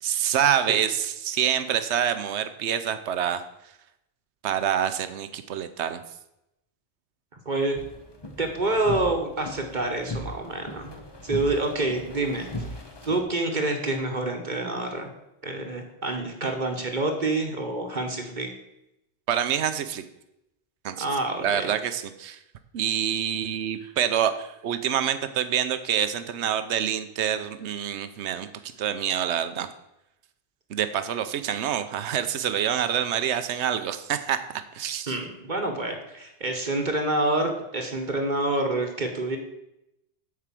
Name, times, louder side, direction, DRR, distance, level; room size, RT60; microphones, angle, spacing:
voice 1, 0.0-3.4 4.4-6.0 19.3-20.0 20.8-21.1 21.4-22.4 22.7-28.5 28.8-29.7 30.7-35.2, right 9 dB, 75° right, 10 dB, 1.0 m, -26 dB
voice 2, 7.4-7.8 8.4-10.9 11.2-12.5 13.0-15.1 15.4-18.5 21.0-21.7 35.1-39.4, right 2 dB, 45° right, 3 dB, 1.2 m, -27 dB
sound 1, 7.8-13.2, left 1 dB, 25° left, 0.9 m, -38 dB
8.3 x 4.8 x 7.5 m, 0.86 s
omnidirectional pair, 1.2 m